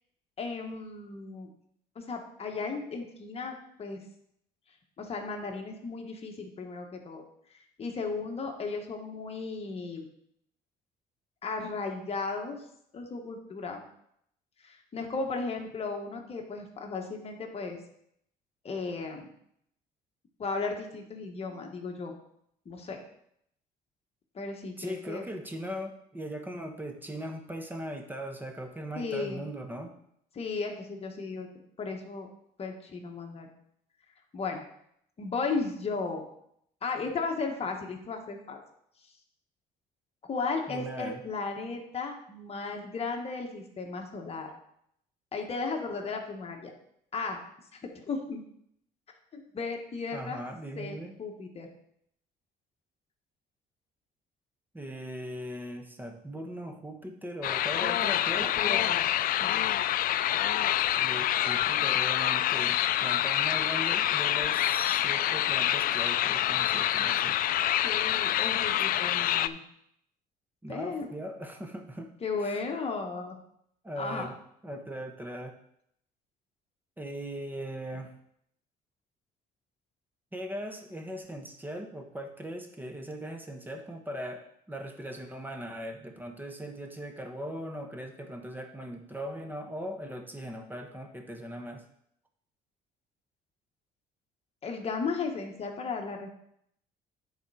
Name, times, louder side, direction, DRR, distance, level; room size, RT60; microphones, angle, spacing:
voice 1, 0.4-1.5 1.9-4.0 5.0-7.2 7.8-10.1 11.4-12.6 12.9-13.8 14.6-17.8 18.6-19.3 20.4-22.1 22.6-23.0 24.3-25.3 29.0-29.4 30.3-31.5 31.8-32.3 32.6-33.5 34.3-34.6 35.2-36.2 36.8-38.6 40.2-44.5 45.3-46.7 47.1-47.4 47.7-48.4 49.3-50.4 50.8-51.7 58.3-59.0 59.4-59.6 67.8-69.6 70.7-71.1 72.2-73.4 74.0-74.3 94.6-96.3, left 4 dB, 35° left, 2 dB, 1.5 m, -35 dB
voice 2, 24.8-30.0 40.7-41.2 50.1-51.2 54.7-58.5 61.0-67.4 70.6-72.1 72.4-72.6 73.8-74.4 74.6-75.6 77.0-78.1 80.3-91.8, equal, 10° right, 4 dB, 1.2 m, -39 dB
sound 1, 57.4-69.5, left 12 dB, 60° left, 0.4 m, -27 dB
10.0 x 4.3 x 4.9 m, 0.72 s
cardioid pair, 110°, 17 cm